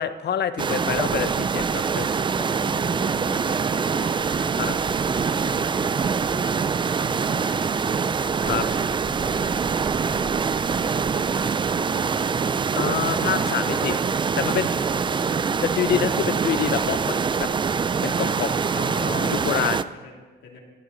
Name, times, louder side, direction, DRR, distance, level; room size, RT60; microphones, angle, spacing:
voice 1, 0.0-2.2 4.6-4.8 8.4-8.6 12.8-14.0 14.4-14.7 15.6-17.5 18.0-19.8, left 9 dB, 55° left, 13 dB, 0.7 m, -27 dB
sound 1, 0.6-19.8, right 5 dB, 25° right, 0.4 m, -24 dB
voice 2, 2.3-4.6 4.9-6.7 7.0-12.2 13.2-14.2 14.5-15.5 18.1-18.9 19.2-20.6, left 2 dB, 75° left, 0 dB, 2.6 m, -42 dB
16.0 x 8.9 x 4.0 m, 1.3 s
cardioid pair, 90°, 20 cm